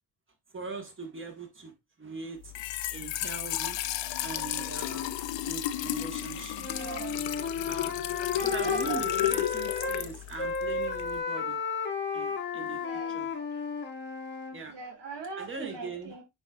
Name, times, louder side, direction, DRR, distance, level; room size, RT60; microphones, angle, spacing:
voice 1, 0.5-1.7 2.0-2.6 2.9-3.8 4.2-5.1 5.5-6.7 7.7-7.9 8.4-11.6 12.1-12.8 13.1-13.3 14.5-14.7 15.4-16.1, right 4 dB, 25° right, 1.5 m, -40 dB
Trickle dribble / Fill (with liquid), 2.4-11.2, left 13 dB, 80° left, 0.7 m, -33 dB
Wind instrument woodwind instrument, 6.6-10.1 10.4-14.6, left 5 dB, 25° left, 1.0 m, -33 dB
voice 2, 6.7-7.2 8.4-9.3 10.0-10.1 12.6-13.2 14.7-16.2, right 3 dB, 70° right, 2.3 m, -40 dB
9.0 x 5.3 x 2.4 m
wide cardioid pair, 180°, 44 cm